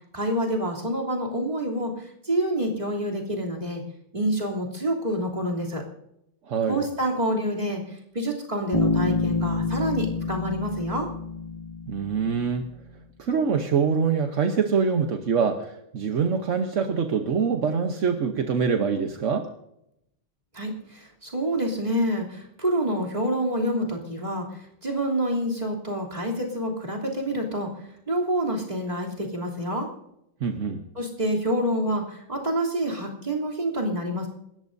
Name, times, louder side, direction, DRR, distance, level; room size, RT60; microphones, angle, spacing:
voice 1, 0.1-3.8 4.1-5.8 6.7-11.1 20.5-27.7 28.1-29.9 30.9-34.3, equal, 20° right, -3 dB, 3.2 m, -27 dB
voice 2, 6.5-6.8 11.9-12.7 13.2-19.5 30.4-30.8, right 6 dB, 50° right, 5 dB, 0.9 m, -24 dB
Bass guitar, 8.7-12.5, left 3 dB, 20° left, 1.6 m, -27 dB
27.5 x 14.0 x 2.7 m, 0.80 s
omnidirectional pair, 2.3 m